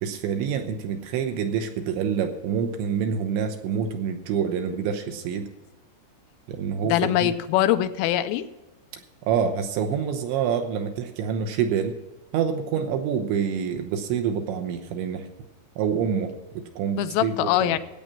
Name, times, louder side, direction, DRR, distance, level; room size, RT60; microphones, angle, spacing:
voice 1, 0.0-5.5 6.5-7.3 9.3-12.0 12.3-15.3 15.8-17.8, right 7 dB, 80° right, 5 dB, 3.0 m, -27 dB
voice 2, 6.8-8.5 16.9-17.8, left 13 dB, 90° left, 11 dB, 3.2 m, -23 dB
14.0 x 8.6 x 5.8 m, 1.1 s
omnidirectional pair, 5.7 m